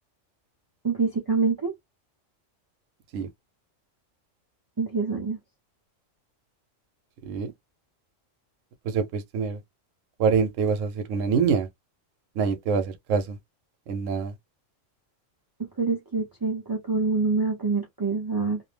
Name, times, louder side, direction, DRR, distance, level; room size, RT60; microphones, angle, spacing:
voice 1, 0.8-1.7 4.8-5.4 15.8-18.6, right 4 dB, 35° right, 0.3 m, -26 dB
voice 2, 7.2-7.5 8.8-9.6 10.2-11.7 12.3-13.4 13.9-14.3, right 6 dB, 75° right, 1.0 m, -25 dB
2.6 x 2.0 x 3.2 m
omnidirectional pair, 1.3 m